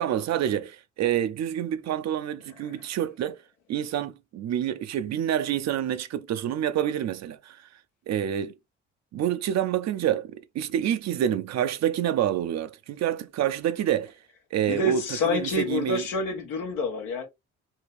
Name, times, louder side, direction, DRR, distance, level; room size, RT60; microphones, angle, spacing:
voice 1, 0.0-3.4 3.7-7.6 8.1-8.5 9.1-14.1 14.5-16.0, right 10 dB, 55° right, 0.5 m, -27 dB
voice 2, 14.7-17.3, left 3 dB, 75° left, 1.0 m, -28 dB
2.8 x 2.7 x 3.4 m
hypercardioid pair, 50°, 32 cm